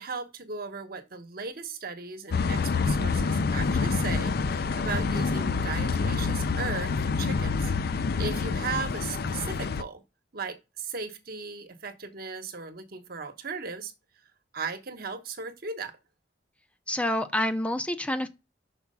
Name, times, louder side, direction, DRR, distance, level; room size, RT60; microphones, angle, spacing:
voice 1, 0.0-6.9 7.2-10.0 10.3-13.9 14.5-15.9, right 4 dB, 60° right, 1.1 m, -37 dB
sound 1, 2.3-9.8, left 4 dB, 60° left, 0.5 m, -27 dB
voice 2, 16.9-18.3, left 1 dB, 10° left, 0.5 m, -28 dB
5.9 x 4.6 x 5.4 m
head